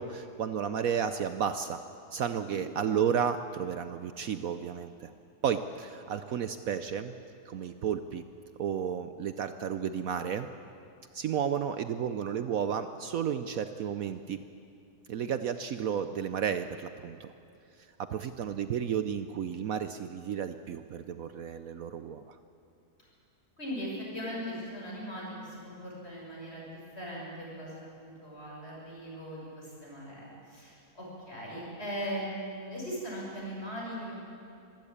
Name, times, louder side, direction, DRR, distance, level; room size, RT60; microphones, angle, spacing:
voice 1, 0.0-1.8 2.1-5.1 5.4-7.1 7.5-8.2 8.6-10.5 11.1-14.4 15.1-17.3 18.0-22.4, right 8 dB, 65° right, 10 dB, 1.1 m, -32 dB
voice 2, 23.6-34.2, equal, 40° left, -4 dB, 6.9 m, -39 dB
24.5 x 15.0 x 8.7 m, 2.6 s
omnidirectional pair, 1.7 m